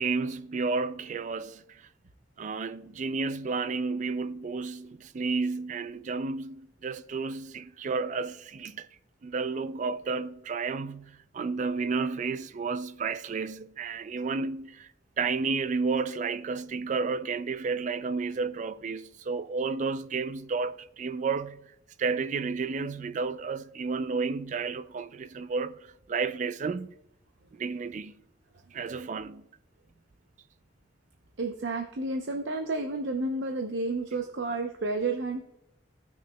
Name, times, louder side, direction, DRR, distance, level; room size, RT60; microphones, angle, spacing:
voice 1, 0.0-1.9 2.4-8.9 9.2-14.9 15.2-21.7 22.0-25.8 26.1-26.9 27.5-28.1 28.7-29.4, right 4 dB, 40° right, 0.3 m, -31 dB
voice 2, 31.4-35.4, right 3 dB, 75° right, 0.7 m, -31 dB
16.5 x 6.4 x 2.2 m
head